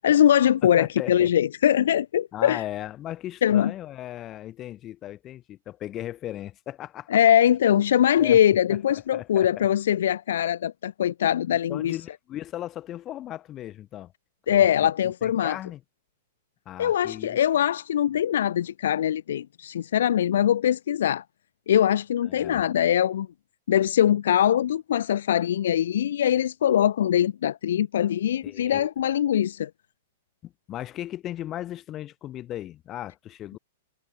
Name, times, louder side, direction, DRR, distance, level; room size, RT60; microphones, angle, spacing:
voice 1, 0.0-2.6 3.4-3.7 7.1-12.0 14.5-15.6 16.8-21.2 21.7-23.3 23.7-29.7, left 10 dB, 65° left, 0.4 m, -22 dB
voice 2, 0.6-1.3 2.3-7.2 8.2-8.4 8.7-9.7 11.7-14.1 14.5-15.8 16.7-17.4 22.2-22.6 28.4-28.9 30.4-33.6, left 13 dB, 20° left, 7.6 m, -37 dB
supercardioid pair, 175°, 0 cm